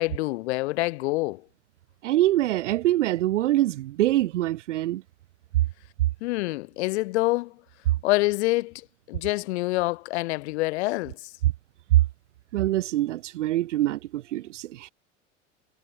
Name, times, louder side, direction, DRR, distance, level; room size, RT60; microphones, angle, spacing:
voice 1, 0.0-1.4 6.2-7.5 8.0-11.3, left 21 dB, 70° left, 0.6 m, -26 dB
voice 2, 2.0-5.0 11.4-11.5 11.9-12.0 12.5-14.9, right 15 dB, 80° right, 0.7 m, -24 dB
hypercardioid pair, 90°, 35 cm